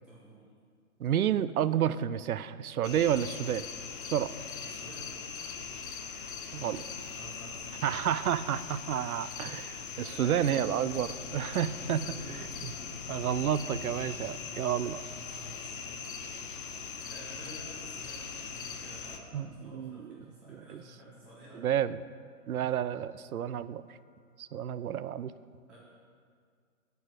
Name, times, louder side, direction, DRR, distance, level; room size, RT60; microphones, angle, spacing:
voice 1, 0.1-0.5 4.6-5.1 6.5-6.7 7.1-7.9 10.0-10.4 11.2-12.4 15.3-15.9 17.0-21.8 25.7-25.8, right 1 dB, 5° right, -13 dB, 2.2 m, -51 dB
voice 2, 1.0-3.6 4.1-4.3 6.5-6.8 7.8-12.2 13.1-15.0 19.3-20.2 20.7-20.8 21.6-22.0 22.5-24.0 24.4-25.3, right 10 dB, 70° right, 15 dB, 0.6 m, -30 dB
sound 1, 2.8-19.2, left 6 dB, 35° left, 0.8 m, -41 dB
sound 2, 10.9-16.3 17.5-18.5 18.9-19.0 21.5-21.6 22.1-25.1, left 1 dB, 85° left, 1.8 m, -52 dB
13.5 x 4.7 x 8.0 m, 2.1 s
hypercardioid pair, 155°, 45 cm